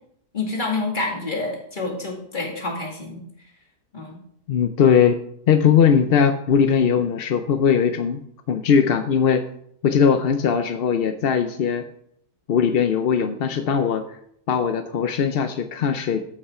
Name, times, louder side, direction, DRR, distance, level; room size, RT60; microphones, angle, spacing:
voice 1, 0.3-3.2 3.9-4.2, left 3 dB, 30° left, 0 dB, 2.3 m, -28 dB
voice 2, 4.5-5.2 5.5-8.2 8.5-9.4 9.8-11.8 12.5-14.0 14.5-16.2, left 7 dB, 60° left, 8 dB, 0.6 m, -19 dB
13.5 x 5.5 x 4.9 m, 0.71 s
omnidirectional pair, 1.6 m